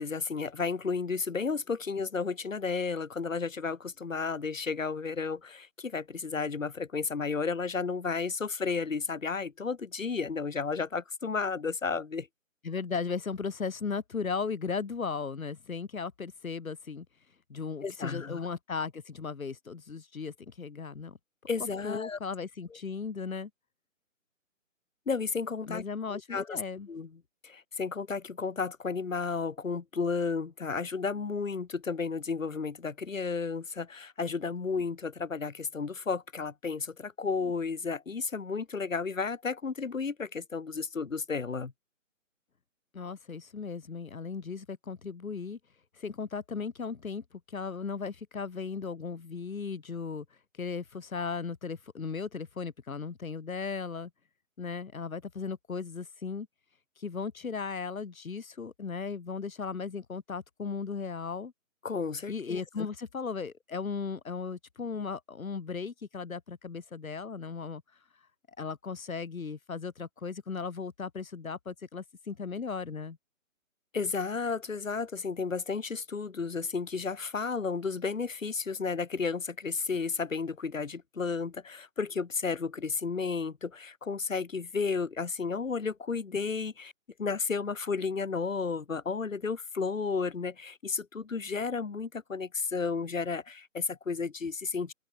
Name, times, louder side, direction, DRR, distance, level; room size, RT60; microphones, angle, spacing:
voice 1, 0.0-12.3 17.8-18.4 21.5-22.2 25.1-25.8 26.1-26.6 26.9-27.1 27.4-41.7 61.8-62.6 73.9-86.9 87.2-94.9, left 5 dB, 70° left, 3.8 m, -32 dB
voice 2, 12.6-17.1 17.5-21.2 21.8-23.5 25.7-26.9 42.9-45.6 46.0-50.3 50.6-54.1 54.6-56.5 57.0-61.5 62.3-67.8 68.6-73.2, left 5 dB, 90° left, 2.3 m, -36 dB
open air
hypercardioid pair, 175°, 40 cm